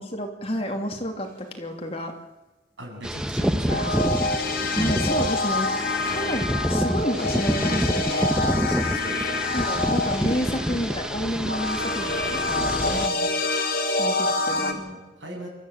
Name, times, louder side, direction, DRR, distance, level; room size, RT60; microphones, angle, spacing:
voice 1, 0.0-2.1 4.7-5.7 6.0-8.3 9.5-13.1 14.0-14.8, equal, 30° left, 3 dB, 2.8 m, -30 dB
voice 2, 2.8-4.4 8.4-9.4 12.5-13.4 14.4-15.5, equal, 80° right, 0 dB, 7.9 m, -39 dB
sound 1, 3.0-13.1, equal, 5° right, 0.9 m, -27 dB
sound 2, 3.7-14.7, left 2 dB, 50° left, 2.8 m, -27 dB
27.5 x 13.5 x 8.9 m, 1.1 s
head